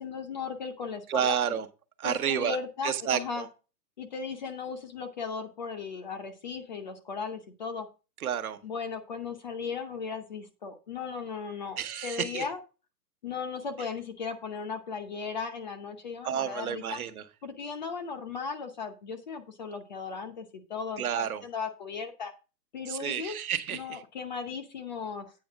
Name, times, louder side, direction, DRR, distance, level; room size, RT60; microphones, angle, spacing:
voice 1, 0.0-1.3 2.0-3.5 4.0-7.9 8.6-11.8 12.0-12.6 13.2-17.0 17.4-22.3 22.7-23.4 23.7-25.3, left 5 dB, 25° left, 7 dB, 0.8 m, -36 dB
voice 2, 1.1-1.7 2.0-2.6 2.8-3.5 8.2-8.6 11.8-12.5 16.2-17.2 21.0-21.4 22.9-24.0, right 9 dB, 60° right, 10 dB, 1.2 m, -30 dB
8.6 x 5.3 x 5.1 m, 0.31 s
hypercardioid pair, 165°, 50 cm